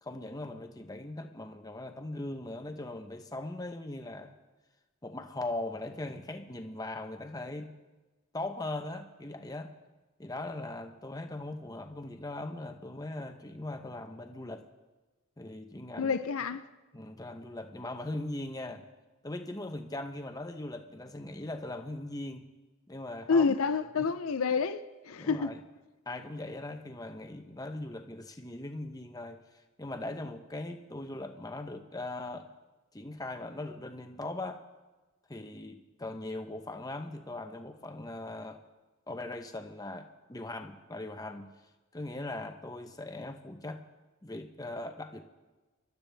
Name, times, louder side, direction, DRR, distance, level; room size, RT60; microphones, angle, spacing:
voice 1, 0.0-4.3 5.0-7.7 8.3-9.7 10.2-14.6 15.4-16.2 16.9-18.8 19.2-22.5 22.9-23.5 24.0-24.1 25.2-25.6 26.1-29.4 29.8-32.5 32.9-34.6 35.3-38.6 39.1-41.5 41.9-43.8 44.2-45.2, left 2 dB, 15° left, 0.8 m, -40 dB
voice 2, 16.0-16.6 23.3-25.5, left 5 dB, 75° left, 0.6 m, -28 dB
26.0 x 12.0 x 3.4 m
head